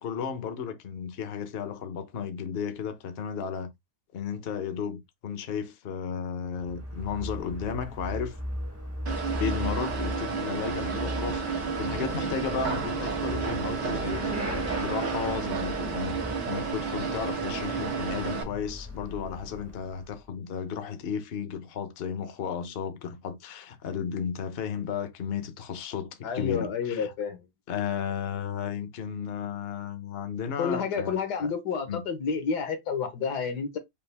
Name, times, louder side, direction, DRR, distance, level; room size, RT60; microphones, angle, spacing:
voice 1, 0.0-3.7 4.1-8.3 9.4-16.2 16.5-26.1 26.3-27.1 27.7-31.5 31.9-32.0, left 7 dB, 50° left, 0.8 m, -34 dB
Motorcycle / Accelerating revving vroom, 6.5-20.3, equal, 10° right, 0.7 m, -37 dB
sound 1, 9.1-18.4, right 5 dB, 85° right, 1.9 m, -31 dB
voice 2, 26.2-27.4 30.6-33.8, left 6 dB, 75° left, 1.7 m, -30 dB
5.4 x 2.4 x 3.4 m
omnidirectional pair, 1.8 m